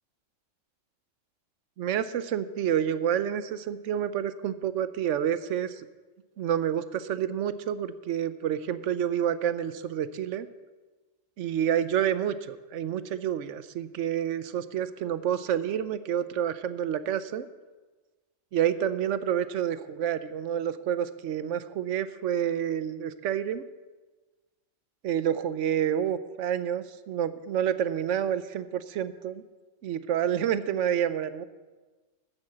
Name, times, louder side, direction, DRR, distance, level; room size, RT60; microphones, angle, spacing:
voice 1, 1.8-5.8 6.4-10.5 11.4-17.5 18.5-23.6 25.0-29.4 29.8-31.4, right 9 dB, 70° right, 13 dB, 0.9 m, -29 dB
14.0 x 6.4 x 7.3 m, 1.3 s
omnidirectional pair, 1.3 m